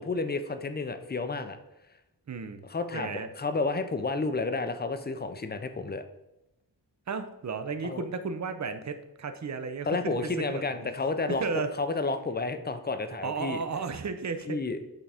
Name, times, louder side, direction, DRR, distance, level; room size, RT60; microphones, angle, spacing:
voice 1, 0.0-1.6 2.7-6.0 7.8-8.0 9.9-11.4 11.8-13.6 14.5-14.8, left 3 dB, 25° left, 9 dB, 0.5 m, -31 dB
voice 2, 2.3-2.6 2.9-3.3 7.1-10.9 11.3-11.7 13.2-14.6, right 5 dB, 45° right, 9 dB, 0.6 m, -34 dB
8.5 x 3.7 x 3.4 m, 0.92 s
wide cardioid pair, 105°, 40 cm